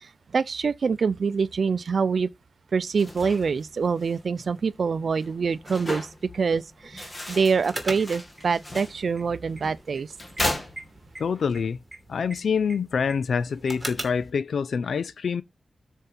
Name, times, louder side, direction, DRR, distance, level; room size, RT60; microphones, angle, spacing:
voice 1, 0.0-2.3 2.7-10.1, right 5 dB, 60° right, 0.6 m, -25 dB
sound 1, 2.8-11.4, left 1 dB, 20° left, 2.1 m, -36 dB
sound 2, 7.6-14.3, right 2 dB, 15° right, 2.7 m, -41 dB
voice 2, 11.2-11.8 12.1-15.4, left 6 dB, 90° left, 0.5 m, -26 dB
12.5 x 4.7 x 5.5 m
wide cardioid pair, 155°, 0 cm